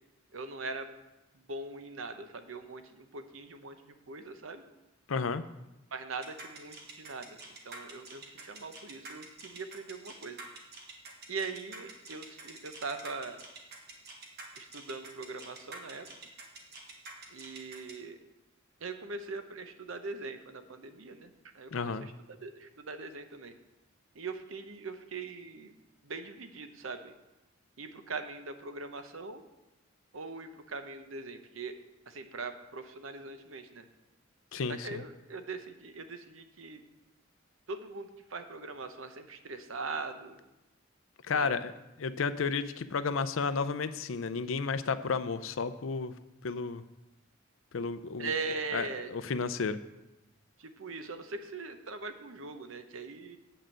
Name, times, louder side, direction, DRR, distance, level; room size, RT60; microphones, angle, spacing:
voice 1, 0.3-0.9 1.5-4.6 5.9-7.4 7.6-10.4 11.3-13.4 14.6-16.1 17.3-18.2 18.8-22.1 22.4-23.5 24.1-25.7 26.0-27.1 27.8-29.4 30.1-31.7 32.1-33.8 34.7-36.8 37.7-40.4 41.3-41.5 48.2-49.1 50.6-53.4, right 3 dB, 80° right, 9 dB, 0.9 m, -41 dB
voice 2, 5.1-5.4 21.7-22.1 34.5-35.0 41.2-41.7 42.0-46.1 46.4-46.8 47.7-48.3 48.7-49.8, left 5 dB, 75° left, 13 dB, 0.5 m, -32 dB
sound 1, 6.2-17.9, right 3 dB, 55° right, 1.6 m, -47 dB
8.8 x 5.1 x 7.6 m, 0.97 s
head